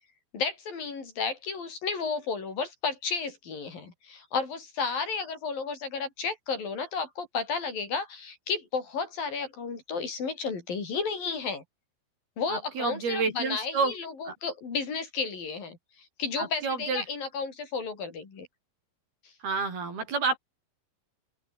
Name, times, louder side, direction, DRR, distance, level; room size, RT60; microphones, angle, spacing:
voice 1, 0.3-11.6 12.4-18.5, left 5 dB, 55° left, 6.5 m, -33 dB
voice 2, 12.5-13.9 14.3-14.4 16.4-17.0 19.4-20.4, right 4 dB, 65° right, 8.4 m, -29 dB
open air
omnidirectional pair, 4.8 m